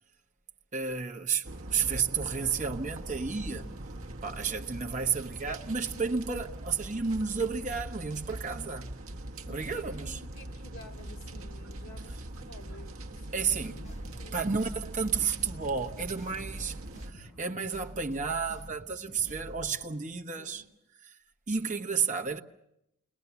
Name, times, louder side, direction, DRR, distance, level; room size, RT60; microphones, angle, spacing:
voice 1, 0.7-3.6 4.2-9.0 9.5-10.2 13.3-13.8 14.3-16.8 17.1-20.6 21.0-21.2 21.5-22.4, right 5 dB, 35° right, 1.1 m, -32 dB
sound 1, 1.4-17.1, right 1 dB, 60° right, 1.1 m, -42 dB
voice 2, 9.5-14.5 20.4-20.7, left 1 dB, 70° left, 2.3 m, -52 dB
sound 2, 13.5-19.7, right 1 dB, 30° left, 7.6 m, -47 dB
29.0 x 20.5 x 7.0 m
head